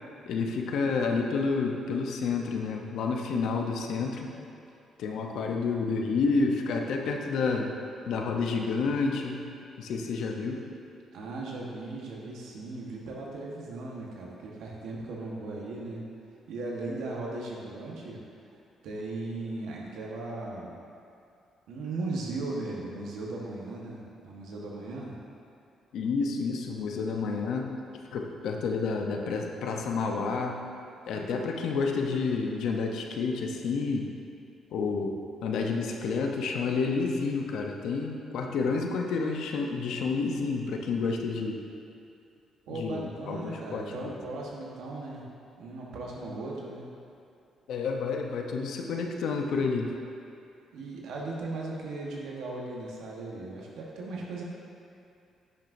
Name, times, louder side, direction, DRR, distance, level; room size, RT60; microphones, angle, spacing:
voice 1, 0.3-4.3 5.0-7.7 8.1-9.4 9.8-10.6 25.9-27.7 28.1-30.6 31.1-34.1 34.7-35.2 35.4-41.6 42.7-44.2 47.7-49.9, left 4 dB, 80° left, 2 dB, 0.7 m, -29 dB
voice 2, 11.1-16.1 16.5-18.2 18.8-20.8 21.7-25.2 31.1-31.4 42.7-45.2 45.6-46.9 50.7-54.4, right 2 dB, 85° right, -3 dB, 1.3 m, -37 dB
10.5 x 6.1 x 2.6 m, 2.5 s
cardioid pair, 90°, 0 cm